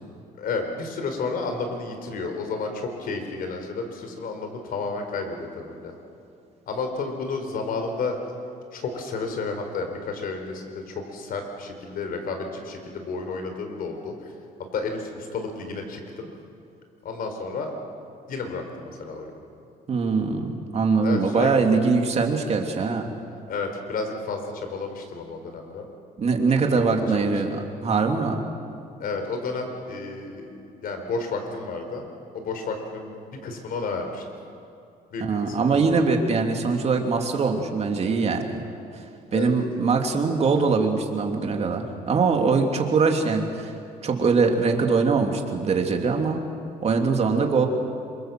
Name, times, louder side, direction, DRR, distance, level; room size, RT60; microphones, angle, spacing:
voice 1, 0.4-6.0 6.7-8.2 8.7-14.3 14.7-16.3 17.0-17.7 18.3-19.4 21.0-21.5 23.5-25.8 26.7-27.3 29.0-32.1 32.3-34.2 35.1-35.8 39.3-39.5, left 4 dB, 60° left, 5 dB, 4.6 m, -31 dB
voice 2, 19.9-23.1 26.2-28.4 35.2-38.6 39.3-43.7 44.0-46.4 46.8-47.7, right 4 dB, 40° right, 3 dB, 3.0 m, -22 dB
27.0 x 23.5 x 7.8 m, 2.5 s
cardioid pair, 110°, 17 cm